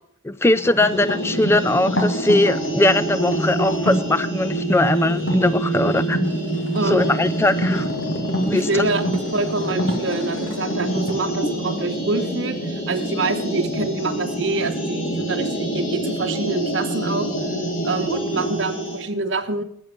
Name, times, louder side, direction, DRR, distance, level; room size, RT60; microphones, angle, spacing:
voice 1, 0.2-6.2 6.9-7.9 8.4-8.8, left 2 dB, 10° left, 15 dB, 0.3 m, -20 dB
sound 1, 0.6-4.1 5.1-5.5 6.0-11.1, equal, 60° left, 1.8 m, -27 dB
sound 2, 0.8-19.0, right 1 dB, 90° left, 4.2 m, -26 dB
voice 2, 6.7-7.2 8.5-17.3 17.8-19.6, right 3 dB, 65° right, 5 dB, 1.0 m, -26 dB
11.0 x 7.4 x 6.7 m, 0.70 s
head